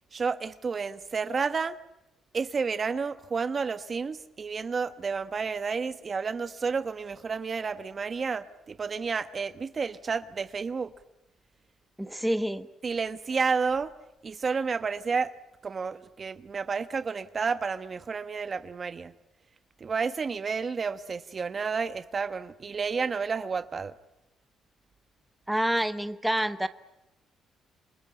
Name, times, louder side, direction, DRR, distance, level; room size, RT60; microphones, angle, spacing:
voice 1, 0.1-1.8 2.3-10.9 12.8-13.9 14.2-15.3 15.6-19.1 19.8-23.9, right 5 dB, 40° right, 1.2 m, -31 dB
voice 2, 12.0-12.7 25.5-26.7, right 1 dB, 5° right, 1.2 m, -27 dB
28.5 x 22.0 x 8.9 m
cardioid pair, 90°, 0 cm